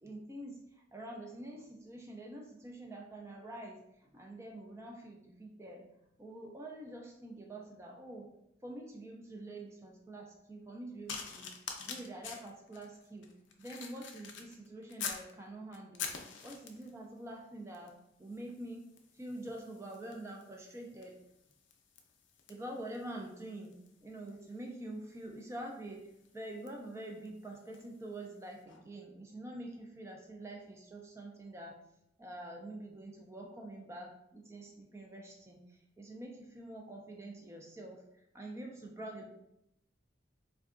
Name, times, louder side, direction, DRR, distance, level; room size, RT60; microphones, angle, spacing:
voice 1, 0.0-5.8 6.2-8.3 8.6-13.3 13.6-21.2 22.5-23.7 24.0-31.8 32.2-39.3, right 1 dB, 15° right, 0 dB, 0.3 m, -46 dB
sound 1, 11.1-15.3 15.7-17.0 17.7-18.0 18.3-28.0 28.7-28.8, left 6 dB, 70° left, 0.4 m, -47 dB
3.5 x 2.2 x 2.4 m, 0.81 s
head